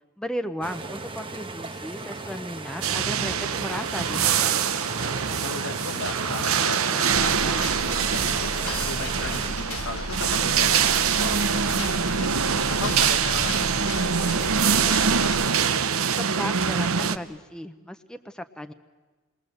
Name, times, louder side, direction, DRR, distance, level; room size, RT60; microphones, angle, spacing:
voice 1, 0.2-4.7 16.2-18.7, equal, 5° left, 7 dB, 0.8 m, -35 dB
sound 1, 0.6-9.5, right 3 dB, 25° right, 1.2 m, -37 dB
sound 2, 2.8-17.2, right 7 dB, 65° right, 0.9 m, -24 dB
voice 2, 5.0-7.8 8.1-8.5 8.8-12.3 12.7-13.7 14.0-15.0, left 4 dB, 60° left, 8 dB, 1.2 m, -37 dB
sound 3, 7.1-15.4, left 2 dB, 80° left, 1.3 m, -35 dB
28.0 x 22.0 x 7.8 m, 1.3 s
head